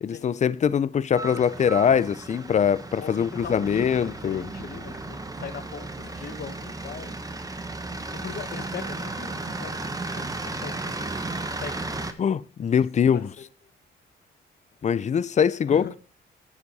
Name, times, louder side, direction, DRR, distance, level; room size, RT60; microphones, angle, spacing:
voice 1, 0.0-4.4 12.2-13.3 14.8-16.0, left 7 dB, 35° left, 0.5 m, -23 dB
sound 1, 1.2-12.1, right 2 dB, 20° right, 1.1 m, -34 dB
voice 2, 3.0-7.2 8.1-12.2 13.1-13.2 15.7-15.9, left 6 dB, 55° left, 1.5 m, -40 dB
9.8 x 7.3 x 4.2 m
cardioid pair, 90°, 20 cm